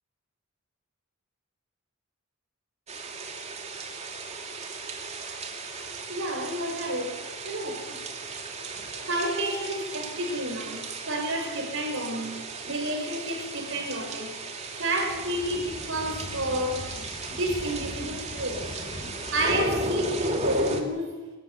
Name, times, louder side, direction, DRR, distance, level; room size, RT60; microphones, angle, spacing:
sound 1, 2.9-20.8, right 2 dB, 30° right, 2.7 m, -35 dB
voice 1, 6.1-7.2 7.4-8.3 8.7-14.4 14.7-16.9 17.3-18.7 19.3-21.2, right 1 dB, 60° right, 3 dB, 6.4 m, -30 dB
sound 2, 14.9-20.6, left 1 dB, 20° left, 6.5 m, -42 dB
24.5 x 14.5 x 9.8 m, 1.2 s
head